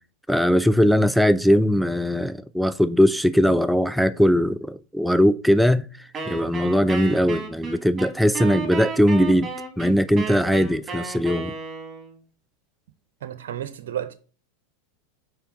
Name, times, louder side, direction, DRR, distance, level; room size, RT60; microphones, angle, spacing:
voice 1, 0.3-5.9 6.3-9.5 9.8-11.5, equal, ahead, 0.3 m, -20 dB
Wind instrument woodwind instrument, 6.1-12.2, right 5 dB, 20° right, 2.4 m, -33 dB
voice 2, 13.2-14.1, right 10 dB, 65° right, 0.5 m, -32 dB
5.7 x 4.5 x 4.7 m
hypercardioid pair, 95°, 0 cm